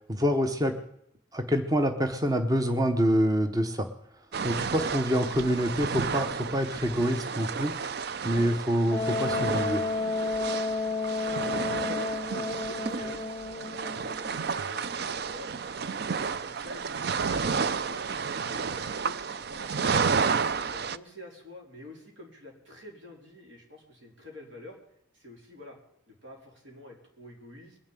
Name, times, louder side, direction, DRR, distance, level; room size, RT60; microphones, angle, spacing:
voice 1, 0.1-0.8 1.3-3.9 4.4-9.8, equal, 20° right, 7 dB, 0.8 m, -26 dB
Seawaves inside a seacave, 4.3-21.0, right 5 dB, 60° right, 0.5 m, -31 dB
Wind instrument woodwind instrument, 8.9-14.4, left 4 dB, 25° left, 0.6 m, -32 dB
voice 2, 11.2-13.2 13.6-16.8 17.1-18.1 18.4-20.3 20.7-24.8 25.1-25.8 26.1-27.8, left 1 dB, 80° right, 0 dB, 4.2 m, -48 dB
21.5 x 7.2 x 9.0 m, 0.79 s
head